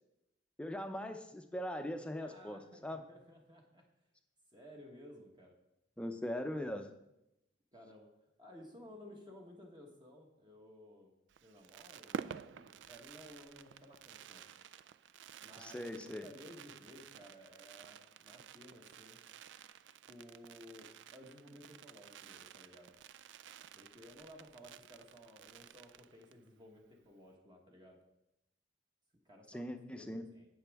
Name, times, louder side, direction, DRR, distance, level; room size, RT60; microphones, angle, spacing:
voice 1, 0.6-3.0 6.0-6.9 15.6-16.3 29.5-30.2, left 1 dB, 5° left, 6 dB, 0.6 m, -40 dB
voice 2, 2.2-3.9 4.5-5.6 7.7-11.1 11.4-14.4 15.4-19.2 19.9-22.9 23.7-28.0 29.2-30.5, equal, 25° right, 0 dB, 1.2 m, -56 dB
Fireworks, 11.3-26.5 26.8-26.9 27.1-27.3, right 7 dB, 70° right, 0.3 m, -51 dB
16.5 x 6.2 x 3.5 m, 0.87 s
head